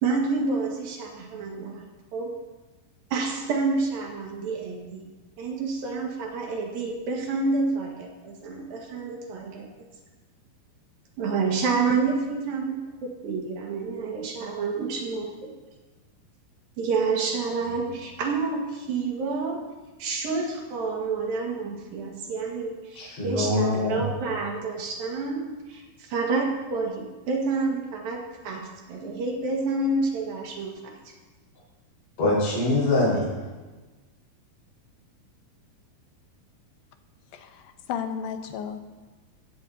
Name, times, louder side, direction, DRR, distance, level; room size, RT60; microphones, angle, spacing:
voice 1, 0.0-1.8 2.1-2.5 3.1-5.1 5.4-9.7 11.2-15.5 16.8-19.6 20.0-30.7, right 4 dB, 70° right, 0 dB, 3.5 m, -29 dB
voice 2, 23.0-24.0 32.2-33.3, left 2 dB, 45° left, -7 dB, 6.0 m, -23 dB
voice 3, 37.3-37.6 37.9-38.8, left 7 dB, 75° left, 7 dB, 2.7 m, -32 dB
17.0 x 16.0 x 2.8 m, 1.2 s
omnidirectional pair, 4.4 m